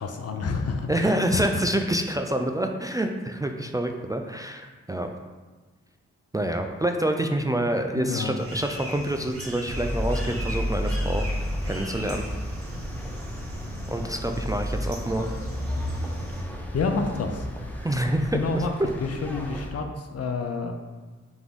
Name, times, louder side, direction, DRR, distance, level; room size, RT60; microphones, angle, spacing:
voice 1, 0.0-1.6 7.9-8.4 16.5-17.5 18.3-20.7, left 4 dB, 55° left, 5 dB, 0.6 m, -29 dB
voice 2, 0.9-5.1 6.3-11.2 11.6-12.2 13.9-15.3 17.8-18.6, right 1 dB, 10° right, 4 dB, 0.3 m, -27 dB
sound 1, 8.3-16.4, equal, 50° right, 1.1 m, -39 dB
sound 2, 9.7-19.7, equal, 5° left, 0.8 m, -32 dB
3.6 x 3.4 x 3.6 m, 1.3 s
supercardioid pair, 40°, 29 cm